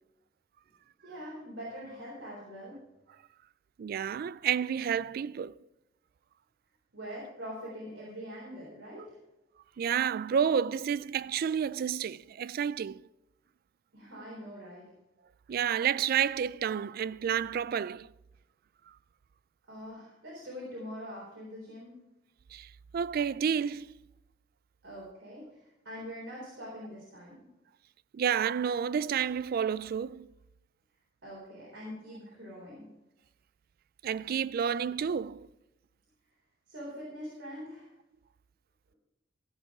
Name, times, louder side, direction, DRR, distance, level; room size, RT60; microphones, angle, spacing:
voice 1, 1.0-2.8 6.9-9.2 13.9-14.8 19.7-21.9 24.8-27.4 31.2-32.9 36.7-37.9, equal, 75° right, 3.9 m, -43 dB
voice 2, 3.8-5.6 9.8-13.0 15.5-18.1 22.5-24.0 28.1-30.3 34.0-35.5, right 8 dB, 50° right, 0.3 m, -30 dB
14.5 x 7.7 x 4.9 m
head